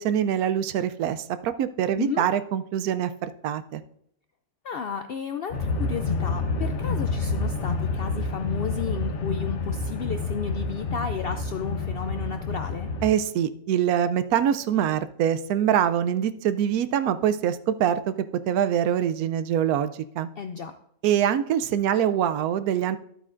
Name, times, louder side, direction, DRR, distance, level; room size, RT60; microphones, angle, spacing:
voice 1, 0.0-3.8 13.0-18.1 18.5-20.3 21.0-23.0, right 9 dB, 90° right, 12 dB, 1.1 m, -24 dB
voice 2, 4.6-12.9 20.4-20.7, left 6 dB, 75° left, 8 dB, 0.5 m, -33 dB
sound 1, 5.5-13.1, left 3 dB, 55° left, 1.2 m, -28 dB
12.0 x 8.3 x 2.5 m, 0.70 s
omnidirectional pair, 1.5 m